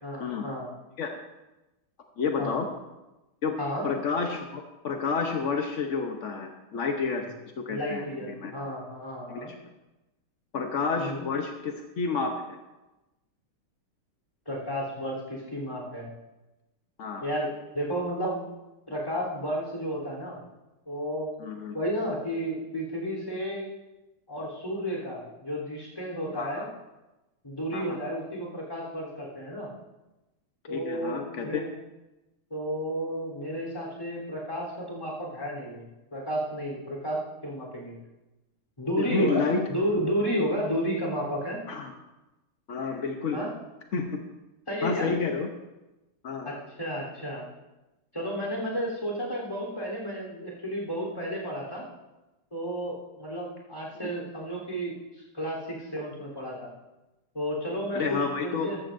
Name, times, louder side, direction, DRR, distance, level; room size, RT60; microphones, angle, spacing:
voice 1, 0.0-0.7 2.4-2.6 3.6-3.9 7.7-9.5 11.0-11.2 14.4-16.1 17.2-17.5 17.7-18.4 18.9-20.4 20.8-21.3 21.7-23.7 24.3-26.7 27.4-29.7 30.7-31.7 32.5-35.8 36.1-38.0 38.8-41.6 43.3-43.5 44.7-45.1 46.4-47.4 48.1-51.8 52.5-56.7 57.3-58.8, equal, 10° left, -3 dB, 3.4 m, -32 dB
voice 2, 2.2-2.7 3.4-3.6 3.8-7.3 7.6-8.0 8.4-8.5 9.3-9.5 10.5-12.6 17.0-17.2 21.4-21.7 26.3-26.7 27.7-28.0 30.7-31.7 39.0-39.7 41.7-41.9 42.7-43.4 43.9-44.2 44.8-45.5 46.2-46.6 54.0-54.1 57.9-58.8, left 4 dB, 65° left, 3 dB, 0.7 m, -30 dB
14.0 x 13.5 x 2.6 m, 1.0 s
omnidirectional pair, 2.4 m